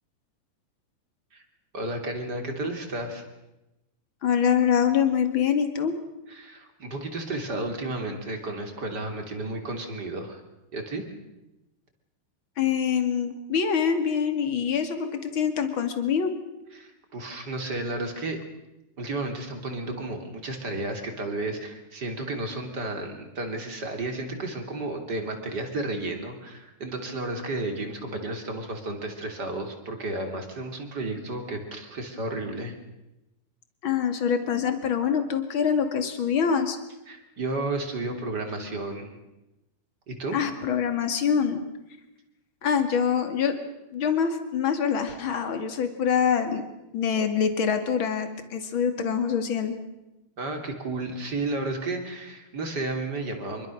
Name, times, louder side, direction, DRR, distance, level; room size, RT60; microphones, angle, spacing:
voice 1, 1.7-3.2 6.3-10.4 10.7-11.0 16.7-18.4 19.0-32.7 37.1-39.2 40.1-40.4 50.4-53.7, right 2 dB, 30° right, 5 dB, 3.4 m, -32 dB
voice 2, 4.2-5.9 12.6-16.3 33.8-36.8 40.3-41.6 42.6-43.6 43.9-46.7 46.9-49.8, left 7 dB, 40° left, 7 dB, 2.7 m, -25 dB
25.5 x 23.5 x 6.5 m, 0.95 s
omnidirectional pair, 3.8 m